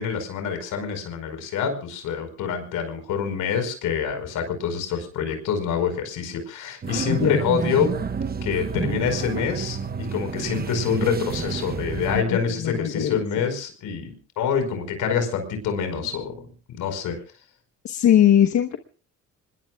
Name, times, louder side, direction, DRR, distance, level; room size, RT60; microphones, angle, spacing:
voice 1, 0.0-7.9 8.4-9.8 10.1-17.2, left 7 dB, 85° left, 7 dB, 5.2 m, -26 dB
sound 1, 6.8-12.2, right 5 dB, 30° right, 1.1 m, -29 dB
voice 2, 7.1-7.4 12.1-12.4 12.6-13.2 17.8-18.8, left 10 dB, 65° left, 7 dB, 1.2 m, -20 dB
26.0 x 21.0 x 2.4 m, 0.38 s
cardioid pair, 90°, 30 cm